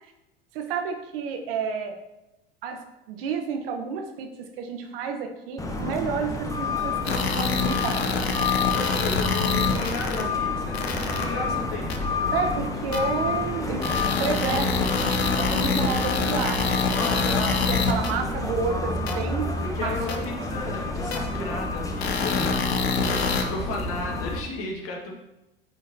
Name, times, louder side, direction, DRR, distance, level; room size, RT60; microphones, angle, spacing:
voice 1, 0.5-2.0 2.6-2.8 3.1-8.2 12.3-13.9 14.2-19.5 19.8-20.4, right 5 dB, 65° right, 5 dB, 1.0 m, -31 dB
sound 1, 5.6-24.4, left 3 dB, 10° left, 0.8 m, -29 dB
sound 2, 7.1-10.2 10.7-11.2 11.9-12.0 12.9-13.0 13.8-18.1 19.1-19.2 20.1-20.2 21.1-21.2 22.0-23.4, left 5 dB, 90° left, 0.7 m, -26 dB
voice 2, 8.7-12.3 19.6-22.7 23.0-25.2, left 3 dB, 50° left, 0 dB, 1.6 m, -34 dB
8.9 x 3.9 x 2.7 m, 0.95 s
hypercardioid pair, 85°, 30 cm